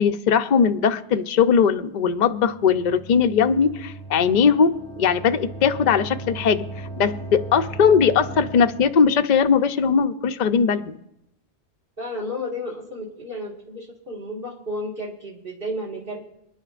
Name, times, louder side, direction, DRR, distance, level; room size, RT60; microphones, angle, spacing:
voice 1, 0.0-6.6 7.0-10.9, left 6 dB, 50° left, 8 dB, 0.7 m, -19 dB
sound 1, 2.3-9.1, right 2 dB, 5° left, 1.0 m, -37 dB
voice 2, 12.0-16.2, left 1 dB, 55° right, -6 dB, 2.1 m, -32 dB
28.0 x 10.0 x 2.5 m, 0.84 s
omnidirectional pair, 1.2 m